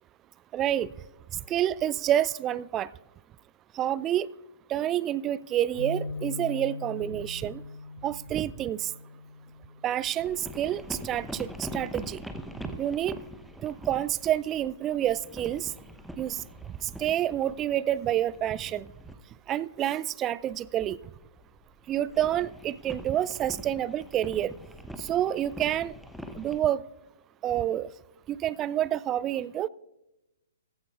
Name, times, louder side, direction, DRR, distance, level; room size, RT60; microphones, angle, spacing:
voice 1, 0.5-0.9 1.5-2.9 3.8-4.3 4.7-7.6 8.0-8.9 9.8-12.2 12.8-13.2 13.6-15.7 16.2-16.4 16.8-18.9 19.5-21.0 21.9-24.5 25.0-25.9 26.4-26.8 27.4-27.9 28.3-29.7, right 11 dB, 20° right, 20 dB, 0.3 m, -28 dB
sound 1, 5.8-12.0, left 2 dB, 85° left, 2.9 m, -41 dB
sound 2, 10.2-19.2 20.8-26.6, equal, ahead, 0.7 m, -43 dB
17.0 x 15.0 x 2.3 m, 0.93 s
figure-of-eight pair, 120°, 0 cm